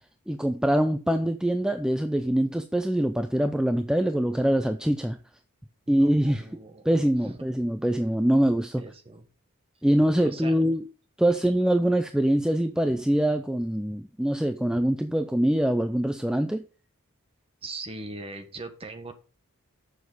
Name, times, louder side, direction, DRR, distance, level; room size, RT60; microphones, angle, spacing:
voice 1, 0.3-5.2 5.9-6.4 6.9-8.8 9.8-10.8 11.2-16.6, right 1 dB, 5° right, 0.4 m, -24 dB
voice 2, 5.9-6.9 7.2-7.4 8.8-9.3 10.2-10.6 17.6-19.1, right 2 dB, 25° right, 1.3 m, -40 dB
7.1 x 6.4 x 5.1 m
head